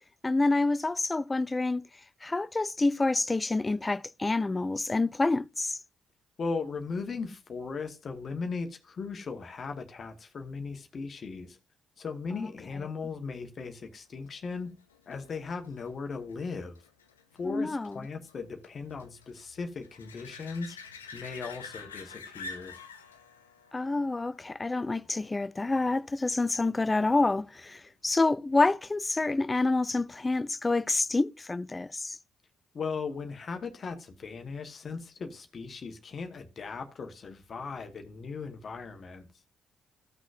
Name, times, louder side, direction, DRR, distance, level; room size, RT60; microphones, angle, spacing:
voice 1, 0.2-1.8 2.2-5.8 12.4-12.5 17.4-18.0 23.7-32.2, left 3 dB, 25° left, 0.4 m, -28 dB
voice 2, 6.4-11.6 12.0-14.7 15.1-16.8 17.4-20.8 21.1-22.8 32.7-39.3, left 4 dB, 45° left, 1.2 m, -37 dB
sound 1, 14.3-25.6 31.2-31.3, left 4 dB, 85° left, 0.6 m, -48 dB
14.5 x 6.2 x 2.5 m
figure-of-eight pair, 40°, 0 cm